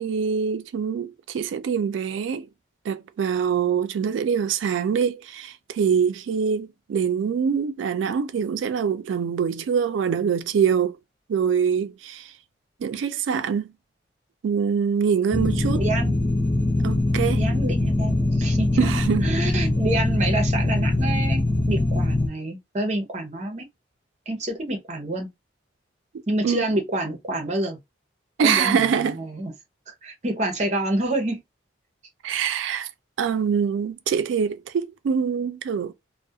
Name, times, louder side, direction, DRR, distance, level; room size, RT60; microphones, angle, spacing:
voice 1, 0.0-2.5 2.9-11.0 11.3-12.3 12.8-13.7 14.4-15.8 16.8-17.4 18.8-19.3 26.4-26.7 28.4-29.2 32.2-32.9 33.2-35.9, right 7 dB, 85° right, 0.3 m, -24 dB
sound 1, 15.3-22.3, left 2 dB, 15° left, 0.4 m, -22 dB
voice 2, 15.7-16.1 17.4-18.9 19.2-23.7 24.3-25.3 26.3-27.8 28.4-29.5 29.9-31.4, right 1 dB, 35° right, 0.6 m, -28 dB
2.3 x 2.0 x 2.7 m
head